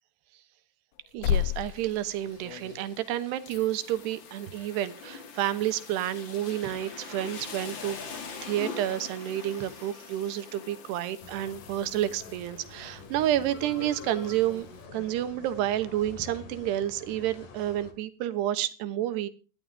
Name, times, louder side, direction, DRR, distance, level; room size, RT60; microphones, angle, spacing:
sound 1, 0.9-3.1 3.5-13.0 15.8-15.9, left 11 dB, 80° left, 2.8 m, -39 dB
voice 1, 1.1-8.0 8.4-14.7 14.9-19.3, right 12 dB, 85° right, 13 dB, 3.3 m, -30 dB
Rain, 1.3-14.9, left 5 dB, 35° left, 2.2 m, -45 dB
sound 2, 11.2-17.9, left 5 dB, 55° left, 3.8 m, -46 dB
18.5 x 14.0 x 3.4 m, 0.36 s
omnidirectional pair, 4.7 m